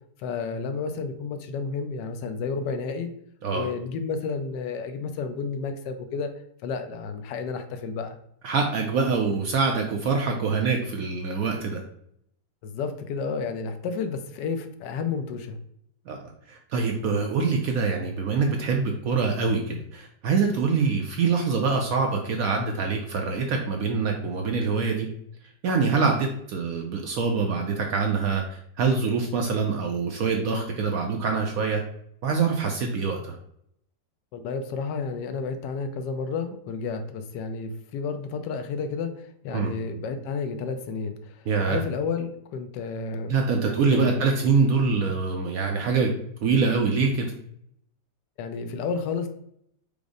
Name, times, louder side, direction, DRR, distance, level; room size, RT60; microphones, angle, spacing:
voice 1, 0.2-3.1 3.5-6.3 6.6-8.2 12.6-15.6 34.3-43.3 43.6-44.3 48.4-49.3, left 5 dB, 75° left, 7 dB, 1.1 m, -31 dB
voice 2, 8.4-11.8 16.1-16.2 16.5-25.1 25.6-28.4 28.8-31.8 32.2-33.4 39.5-39.7 41.5-41.8 43.3-46.1 46.4-47.3, right 4 dB, 70° right, 2 dB, 0.9 m, -24 dB
5.1 x 2.0 x 4.8 m, 0.71 s
omnidirectional pair, 1.9 m